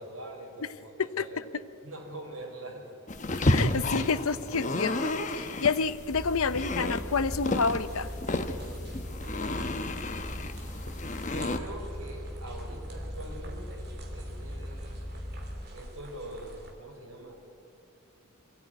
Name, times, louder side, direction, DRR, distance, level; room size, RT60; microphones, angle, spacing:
voice 1, 0.0-1.5 1.8-2.9 11.3-15.0 15.7-17.3, right 1 dB, 75° right, 1 dB, 4.5 m, -44 dB
sound 1, 3.1-11.6, left 2 dB, 35° left, 0.9 m, -31 dB
voice 2, 3.5-8.1, left 5 dB, 70° left, 14 dB, 0.7 m, -29 dB
sound 2, 6.1-15.7, equal, 5° left, 0.5 m, -40 dB
sound 3, 7.4-16.7, right 1 dB, 45° right, 2.8 m, -47 dB
23.0 x 14.5 x 9.3 m, 2.7 s
head